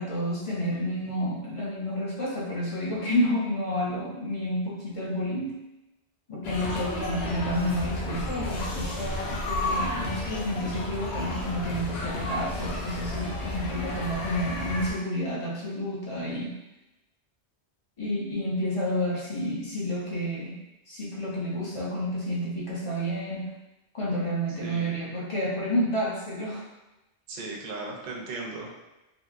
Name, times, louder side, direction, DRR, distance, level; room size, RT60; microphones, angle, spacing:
voice 1, 0.0-5.6 6.3-16.6 18.0-20.6 20.9-23.6 23.9-26.6, equal, 40° left, -5 dB, 0.5 m, -30 dB
sound 1, 6.4-14.9, left 1 dB, 75° left, 0.8 m, -32 dB
voice 2, 24.6-25.1 27.3-28.7, right 3 dB, 55° right, -1 dB, 0.6 m, -37 dB
2.8 x 2.7 x 2.4 m, 0.99 s
omnidirectional pair, 1.1 m